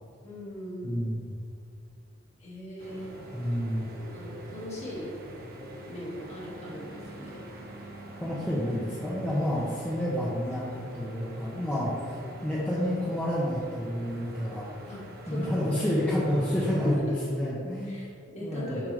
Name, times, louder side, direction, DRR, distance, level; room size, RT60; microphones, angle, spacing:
voice 1, 0.2-1.0 2.4-3.1 4.1-5.1 5.9-7.4 11.5-11.7 14.9-16.0 16.8-17.1 17.8-18.9, equal, 35° left, -5 dB, 1.9 m, -39 dB
voice 2, 0.8-1.3 3.3-3.9 8.2-14.7 15.3-18.0 18.4-18.8, equal, 5° left, -8 dB, 1.0 m, -29 dB
sound 1, 2.8-15.0, left 1 dB, 60° left, 1.9 m, -51 dB
sound 2, 2.8-17.0, right 1 dB, 50° right, 1.0 m, -45 dB
7.2 x 6.8 x 3.4 m, 2.3 s
head